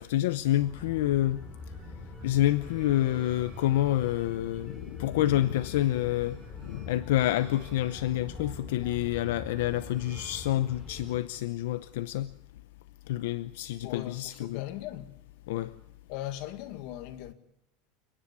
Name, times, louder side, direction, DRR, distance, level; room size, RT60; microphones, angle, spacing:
voice 1, 0.0-1.4 2.2-12.3 13.1-14.6 15.5-15.7, left 14 dB, 85° left, 0.7 m, -28 dB
sound 1, 0.6-11.2, left 3 dB, 10° left, 3.6 m, -44 dB
sound 2, 2.1-11.2, right 5 dB, 30° right, 6.7 m, -57 dB
voice 2, 13.8-15.2 16.1-17.3, left 13 dB, 55° left, 2.0 m, -39 dB
29.5 x 10.5 x 9.8 m
supercardioid pair, 155°, 0 cm